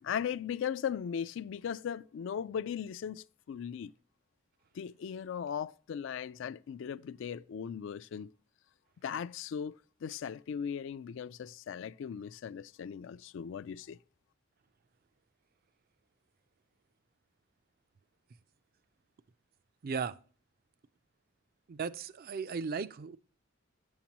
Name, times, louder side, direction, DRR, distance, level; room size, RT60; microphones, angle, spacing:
voice 1, 0.0-3.9 4.7-8.3 9.0-14.0, left 8 dB, 65° left, 0.3 m, -38 dB
voice 2, 19.8-20.2 21.7-23.2, right 5 dB, 50° right, 0.4 m, -36 dB
9.1 x 7.3 x 2.9 m
head